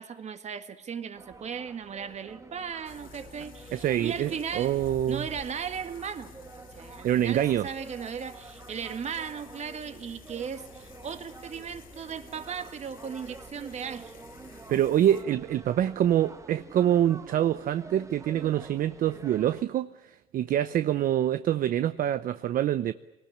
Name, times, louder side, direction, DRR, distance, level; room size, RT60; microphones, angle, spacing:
voice 1, 0.0-4.8 5.1-14.2, right 7 dB, 40° right, 1.9 m, -37 dB
sound 1, 1.1-19.6, right 3 dB, 20° right, 1.2 m, -48 dB
sound 2, 2.9-15.2, left 6 dB, 55° left, 2.1 m, -52 dB
voice 2, 3.7-5.2 7.0-7.7 14.7-22.9, right 11 dB, 55° right, 0.7 m, -26 dB
23.0 x 19.0 x 8.7 m
cardioid pair, 110°, 17 cm